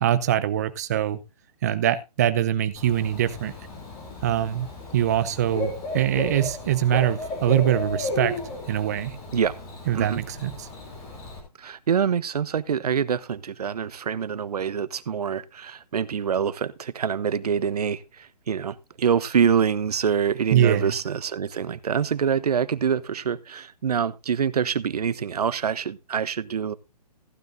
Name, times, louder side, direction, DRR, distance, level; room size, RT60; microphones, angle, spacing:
voice 1, 0.0-1.2 1.6-3.5 4.2-4.7 4.9-8.4 8.7-9.2 9.9-10.7 20.5-20.9, right 11 dB, 25° right, 0.7 m, -23 dB
Bird / Cricket, 2.7-11.4, left 3 dB, 15° left, 3.2 m, -34 dB
voice 2, 11.6-26.7, right 7 dB, 70° right, 0.9 m, -25 dB
15.0 x 10.5 x 2.6 m
hypercardioid pair, 170°, 20 cm